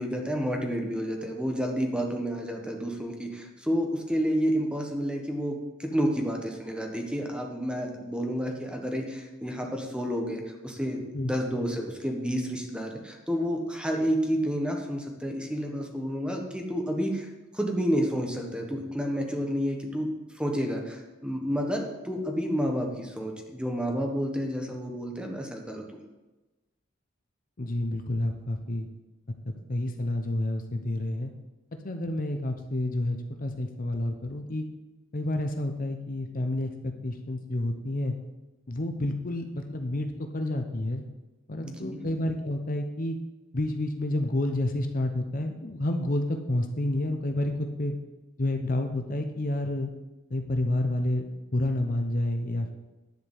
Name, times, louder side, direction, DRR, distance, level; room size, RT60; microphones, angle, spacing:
voice 1, 0.0-20.1 20.3-25.8 41.6-42.0, equal, 5° right, 2 dB, 1.3 m, -30 dB
voice 2, 27.6-28.9 29.5-31.3 31.8-34.6 35.1-38.2 38.7-41.0 41.5-43.2 43.5-47.9 48.4-49.9 50.3-52.7, left 1 dB, 45° left, 5 dB, 0.8 m, -29 dB
10.5 x 5.1 x 8.1 m, 1.1 s
head